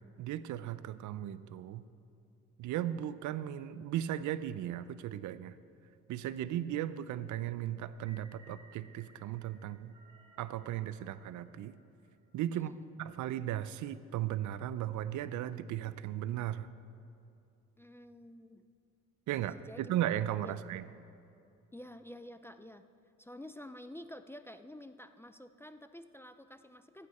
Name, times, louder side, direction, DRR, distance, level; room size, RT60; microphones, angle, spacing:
voice 1, 0.2-1.8 2.6-5.6 6.1-10.0 10.4-11.7 12.3-16.7 19.3-20.8, right 12 dB, 75° right, 15 dB, 0.5 m, -36 dB
sound 1, 7.9-12.3, right 2 dB, 20° right, 2.1 m, -62 dB
voice 2, 12.5-12.9 17.8-18.6 19.3-19.8 20.4-20.5 21.7-22.9 23.2-27.1, left 1 dB, 10° left, 10 dB, 0.3 m, -50 dB
14.5 x 8.5 x 4.2 m, 2.6 s
cardioid pair, 90°, 30 cm